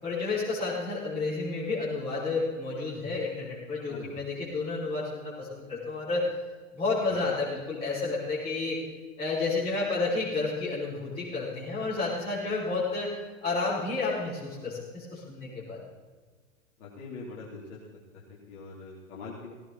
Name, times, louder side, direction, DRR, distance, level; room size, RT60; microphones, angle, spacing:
voice 1, 0.0-6.2 6.7-8.8 9.2-13.1 13.4-15.8, left 3 dB, 15° left, -11 dB, 6.1 m, -31 dB
voice 2, 3.9-4.2 7.1-7.2 16.8-17.8 18.1-19.5, left 4 dB, 45° left, -5 dB, 3.8 m, -43 dB
18.0 x 18.0 x 4.3 m, 1.4 s
figure-of-eight pair, 95°, 42 cm